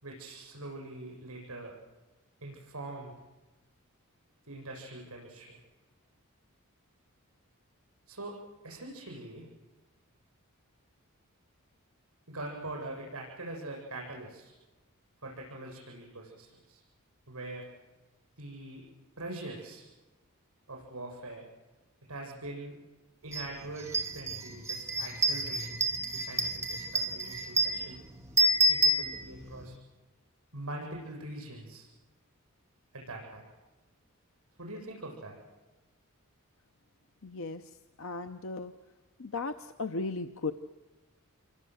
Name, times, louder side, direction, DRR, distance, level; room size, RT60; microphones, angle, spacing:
voice 1, 0.0-1.7 2.4-3.1 4.4-5.6 8.1-8.4 8.6-9.5 12.3-14.5 15.2-16.8 17.3-17.7 18.4-18.9 19.2-19.9 20.7-21.4 22.1-22.8 23.2-25.8 26.1-28.1 28.7-29.7 30.5-31.9 32.9-33.5 34.6-35.4, right 2 dB, 80° right, 1 dB, 7.7 m, -43 dB
sound 1, 23.3-23.5 23.8-29.6, right 2 dB, 15° right, 2.3 m, -29 dB
voice 2, 37.2-37.6 38.0-38.7 39.2-40.5, left 3 dB, 65° left, 8 dB, 0.8 m, -36 dB
28.0 x 24.0 x 7.9 m, 1.2 s
head